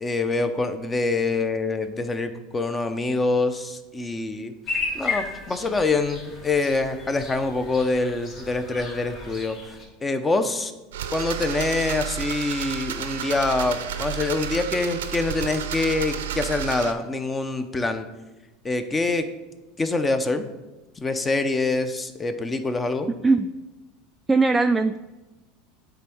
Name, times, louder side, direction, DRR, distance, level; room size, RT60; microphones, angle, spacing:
voice 1, 0.0-4.5 4.9-10.7 11.1-18.1 18.6-19.3 19.8-20.5 21.0-23.1, left 3 dB, 20° left, 9 dB, 0.7 m, -25 dB
sound 1, 4.7-9.8, left 3 dB, 45° left, 2.6 m, -34 dB
sound 2, 10.9-16.9, right 9 dB, 85° right, 0.6 m, -31 dB
voice 2, 24.3-25.0, right 3 dB, 10° right, 7 dB, 0.3 m, -19 dB
8.2 x 3.5 x 6.1 m, 1.1 s
hypercardioid pair, 95°, 0 cm